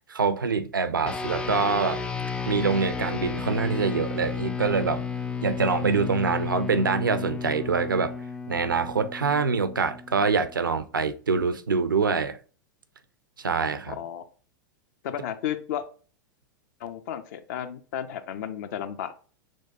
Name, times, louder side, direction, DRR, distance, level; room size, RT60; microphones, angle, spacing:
voice 1, 0.1-2.0 2.5-5.0 5.4-8.2 8.5-12.4 13.4-14.0, right 5 dB, 90° right, 0.4 m, -25 dB
sound 1, 1.0-10.7, left 5 dB, 10° left, 0.3 m, -33 dB
voice 2, 13.9-14.2 15.0-15.9 16.8-19.1, left 10 dB, 60° left, 0.6 m, -33 dB
6.1 x 2.3 x 2.5 m
hypercardioid pair, 95°, 11 cm